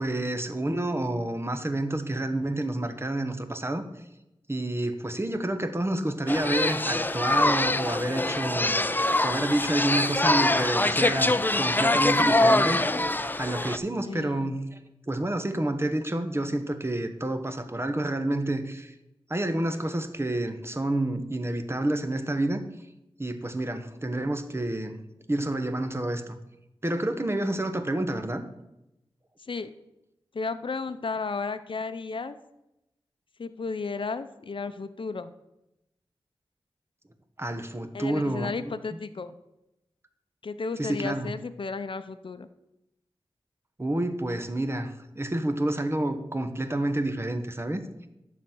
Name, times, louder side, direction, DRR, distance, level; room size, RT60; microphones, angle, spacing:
voice 1, 0.0-3.8 4.5-13.0 13.4-14.6 15.1-18.9 19.3-22.6 23.2-25.0 25.3-26.4 26.8-28.4 37.4-38.7 40.8-41.3 43.8-47.8, right 1 dB, 25° right, 9 dB, 1.1 m, -29 dB
sound 1, 6.3-13.8, left 2 dB, 20° left, 0.5 m, -24 dB
voice 2, 14.1-14.5 29.4-29.7 30.3-32.4 33.4-35.3 37.9-39.4 40.4-42.5, left 4 dB, 60° left, 10 dB, 0.6 m, -33 dB
11.5 x 4.1 x 7.7 m, 0.89 s
wide cardioid pair, 55°, 10 cm